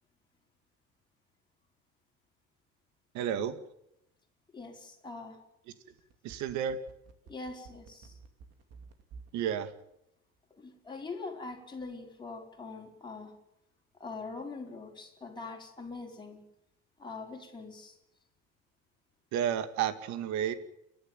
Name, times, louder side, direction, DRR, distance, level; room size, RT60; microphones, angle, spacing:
voice 1, 3.1-3.6 6.2-6.8 9.3-9.7 19.3-20.5, right 9 dB, 70° right, 11 dB, 2.1 m, -31 dB
voice 2, 4.5-5.4 7.3-8.2 10.5-13.3 13.9-16.4 17.0-18.0, left 3 dB, 15° left, 1 dB, 4.8 m, -43 dB
sound 1, 6.0-9.4 9.7-9.8, right 5 dB, 55° right, 3.0 m, -51 dB
29.5 x 11.5 x 9.1 m, 0.79 s
cardioid pair, 145°, 30 cm